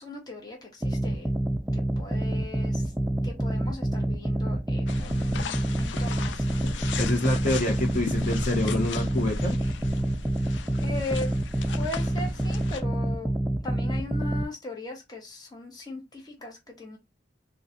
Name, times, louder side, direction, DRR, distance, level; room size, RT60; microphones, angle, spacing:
voice 1, 0.0-1.3 1.7-2.9 3.2-6.6 10.8-11.3 11.8-13.3 13.6-17.0, left 2 dB, 20° left, 1.0 m, -38 dB
sound 1, 0.8-14.4, right 1 dB, 5° right, 0.3 m, -28 dB
sound 2, 4.9-12.8, left 4 dB, 75° left, 0.4 m, -37 dB
voice 2, 7.0-9.6, left 1 dB, 45° left, 0.9 m, -27 dB
3.7 x 2.4 x 2.8 m
head